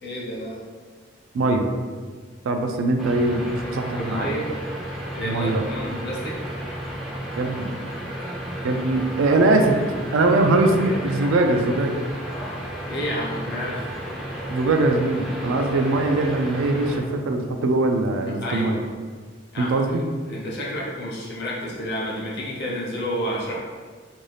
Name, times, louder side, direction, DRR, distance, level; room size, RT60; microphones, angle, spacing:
voice 1, 0.0-0.6 4.0-4.5 5.1-6.4 12.9-13.9 18.3-18.9 19.5-19.8 20.3-23.6, equal, 55° left, -4 dB, 0.6 m, -30 dB
voice 2, 1.3-1.7 2.5-4.3 5.2-5.6 7.4-7.7 8.6-9.8 10.1-12.0 14.5-18.8 19.6-20.0, right 2 dB, 80° right, 4 dB, 0.3 m, -21 dB
sound 1, 3.0-17.0, right 1 dB, ahead, 0.3 m, -32 dB
2.6 x 2.3 x 3.2 m, 1.5 s
head